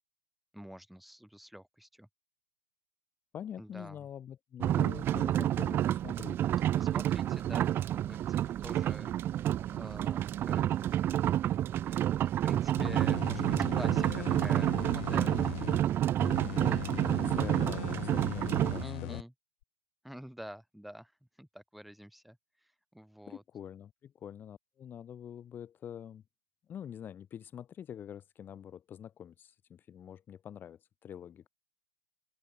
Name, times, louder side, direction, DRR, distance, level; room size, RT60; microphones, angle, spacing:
voice 1, 0.5-2.1 3.6-4.1 6.8-10.7 12.2-15.6 16.6-16.9 18.8-19.3 20.0-21.1 21.4-22.4 22.9-23.4, equal, ahead, 7.0 m, -48 dB
voice 2, 3.3-6.4 16.6-19.2 23.3-26.2 26.7-31.5, left 9 dB, 25° left, 2.2 m, -45 dB
sound 1, 4.6-18.8, right 12 dB, 25° right, 0.7 m, -29 dB
sound 2, 12.8-15.8 16.2-19.2 19.6-19.7, left 21 dB, 50° left, 1.5 m, -40 dB
open air
figure-of-eight pair, 105°, 8 cm